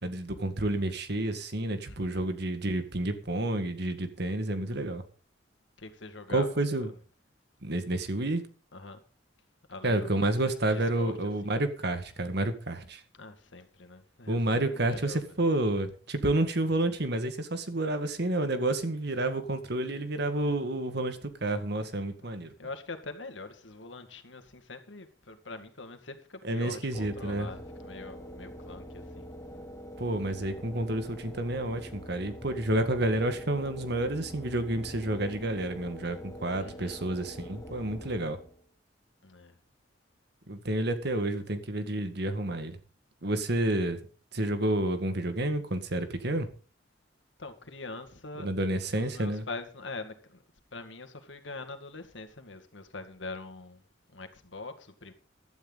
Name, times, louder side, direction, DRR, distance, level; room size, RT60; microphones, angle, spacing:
voice 1, 0.0-5.0 6.3-6.9 7.6-8.4 9.8-13.0 14.3-22.5 26.4-27.5 30.0-38.4 40.5-42.8 43.2-44.0 44.3-46.5 48.4-49.4, right 1 dB, 60° right, 1.8 m, -30 dB
voice 2, 1.8-2.2 5.8-6.6 8.7-9.0 9.7-10.2 10.7-11.1 11.4-11.5 13.1-15.4 22.2-29.3 36.6-37.0 39.2-39.6 47.4-48.5 48.9-50.4 50.7-53.8 54.1-55.1, left 3 dB, 85° left, 2.0 m, -43 dB
sound 1, 26.9-38.6, equal, 15° left, 2.2 m, -45 dB
16.0 x 12.0 x 4.0 m
head